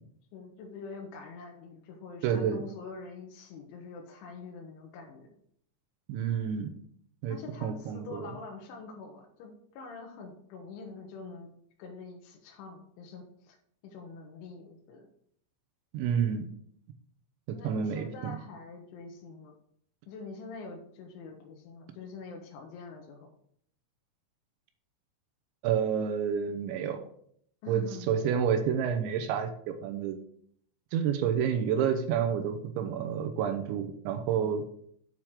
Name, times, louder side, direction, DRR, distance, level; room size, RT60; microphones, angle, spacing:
voice 1, 0.3-5.3 7.3-11.5 11.8-13.6 13.8-15.1 17.5-19.6 20.1-23.3 27.6-28.1 34.3-34.6, left 4 dB, 85° left, 1 dB, 3.4 m, -45 dB
voice 2, 2.2-2.6 6.1-6.7 7.2-8.3 15.9-16.5 17.5-18.3 25.6-27.0 27.7-30.2 30.9-34.6, right 8 dB, 85° right, 7 dB, 3.0 m, -29 dB
8.6 x 4.5 x 6.3 m, 0.65 s
omnidirectional pair, 5.5 m